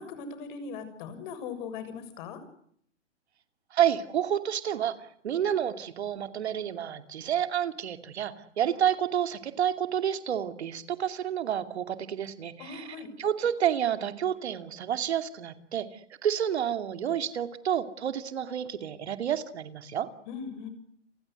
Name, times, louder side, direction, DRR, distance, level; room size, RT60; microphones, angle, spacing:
voice 1, 0.0-2.4 12.6-13.1 20.3-20.7, left 5 dB, 45° left, 11 dB, 6.9 m, -39 dB
voice 2, 3.7-20.1, right 9 dB, 65° right, 9 dB, 2.7 m, -29 dB
30.0 x 23.5 x 8.0 m, 0.66 s
hypercardioid pair, 125°, 35 cm